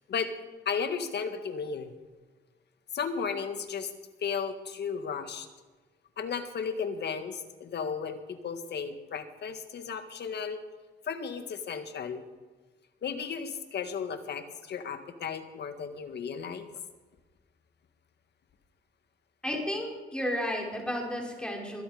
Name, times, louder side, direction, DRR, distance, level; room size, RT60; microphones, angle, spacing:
voice 1, 0.7-1.9 2.9-3.9 4.2-5.5 6.2-10.6 11.0-12.2 13.0-16.7, left 6 dB, 60° left, 8 dB, 1.8 m, -34 dB
voice 2, 19.4-21.8, equal, 5° left, -1 dB, 4.9 m, -32 dB
21.5 x 11.5 x 5.0 m, 1.3 s
cardioid pair, 90°, 20 cm